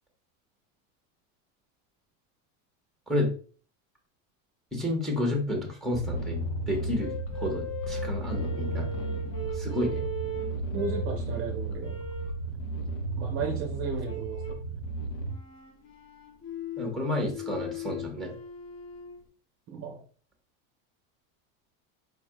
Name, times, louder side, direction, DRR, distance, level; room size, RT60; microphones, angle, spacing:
voice 1, 4.7-8.9 9.5-10.0 16.8-18.3, left 1 dB, ahead, 1 dB, 1.2 m, -30 dB
sound 1, 5.9-15.3, right 2 dB, 65° left, 1.2 m, -34 dB
sound 2, 7.0-11.2 11.8-12.4 14.0-14.7 15.2-19.2, left 1 dB, 40° left, 2.2 m, -39 dB
voice 2, 10.7-12.0 13.2-14.7 19.7-20.0, right 5 dB, 35° right, 2 dB, 0.7 m, -34 dB
4.7 x 4.5 x 2.3 m, 0.41 s
supercardioid pair, 155°, 40 cm